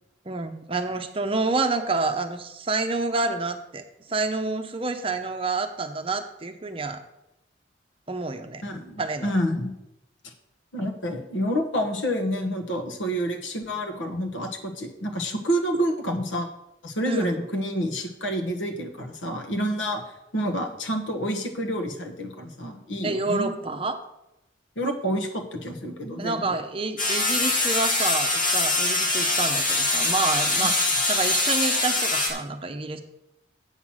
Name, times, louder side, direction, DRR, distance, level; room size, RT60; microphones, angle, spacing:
voice 1, 0.3-7.0 8.1-8.6 9.0-9.3 15.7-15.8 17.0-17.3 23.0-24.0 26.2-33.0, right 3 dB, 30° right, 7 dB, 0.7 m, -28 dB
voice 2, 8.6-9.7 10.2-10.3 10.7-16.5 16.8-20.0 20.3-23.6 24.8-26.5, equal, 85° left, 3 dB, 1.4 m, -28 dB
sound 1, 27.0-32.3, left 2 dB, 45° left, 1.7 m, -23 dB
8.0 x 5.8 x 6.3 m, 0.88 s
head